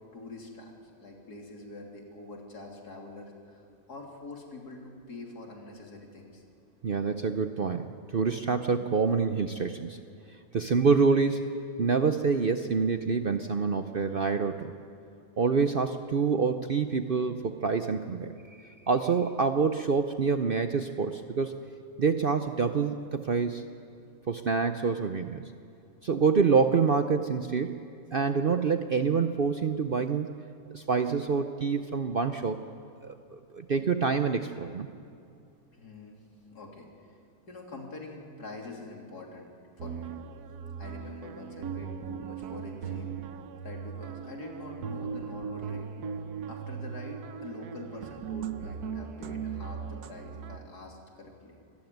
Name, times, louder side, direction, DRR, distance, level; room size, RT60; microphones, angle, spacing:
voice 1, 0.1-6.4 35.7-36.2 36.5-37.2 37.5-39.5 39.8-40.1 40.8-43.1 43.6-45.9 46.5-51.6, left 2 dB, 80° left, 0 dB, 3.6 m, -45 dB
voice 2, 6.8-7.9 8.1-10.0 10.5-11.4 11.8-14.7 15.4-18.3 18.6-21.5 22.0-23.6 24.3-25.4 26.0-27.8 28.1-30.3 30.7-32.6 33.0-34.9, right 5 dB, 50° right, 8 dB, 0.7 m, -26 dB
sound 1, 39.8-50.6, right 7 dB, 75° right, 1.3 m, -38 dB
25.5 x 14.5 x 9.3 m, 2.5 s
omnidirectional pair, 1.7 m